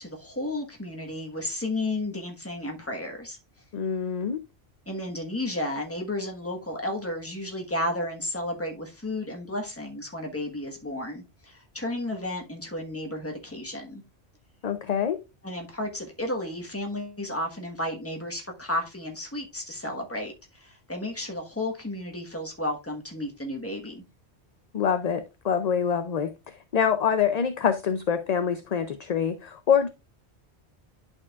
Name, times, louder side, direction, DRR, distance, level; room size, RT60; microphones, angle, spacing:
voice 1, 0.0-3.4 4.9-14.0 15.4-24.0, left 1 dB, 15° left, 1.2 m, -33 dB
voice 2, 3.7-4.4 14.6-15.2 24.7-29.9, left 7 dB, 50° left, 0.5 m, -25 dB
11.0 x 4.5 x 2.4 m
omnidirectional pair, 1.1 m